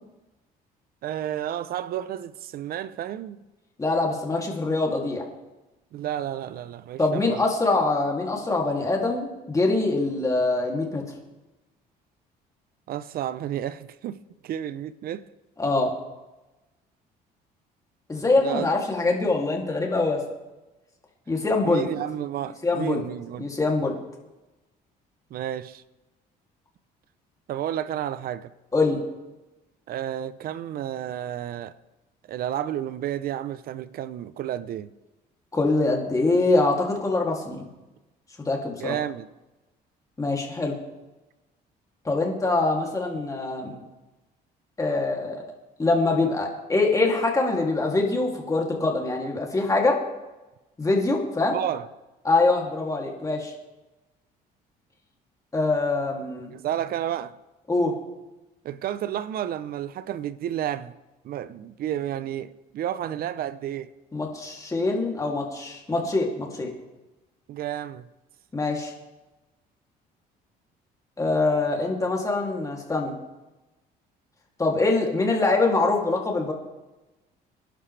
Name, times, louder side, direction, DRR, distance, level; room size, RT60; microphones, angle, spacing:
voice 1, 1.0-3.4 5.9-7.4 12.9-15.3 18.4-18.7 21.6-23.5 25.3-25.8 27.5-28.5 29.9-31.7 32.3-34.9 38.8-39.3 51.5-51.9 56.5-57.4 58.6-60.9 61.2-63.9 67.5-68.0, right 11 dB, 60° right, 0.7 m, -31 dB
voice 2, 3.8-5.2 7.0-11.0 15.6-15.9 18.1-20.2 21.3-21.9 22.6-23.0 23.4-24.0 28.7-29.0 35.5-37.7 38.4-38.9 40.2-40.7 42.0-43.8 44.8-45.4 45.8-50.0 50.8-51.6 52.2-53.5 55.5-56.5 57.7-58.0 64.1-66.7 68.5-68.9 71.2-73.2 74.6-76.5, left 3 dB, 20° left, 2.7 m, -24 dB
26.5 x 11.5 x 3.4 m
cardioid pair, 110°, 17 cm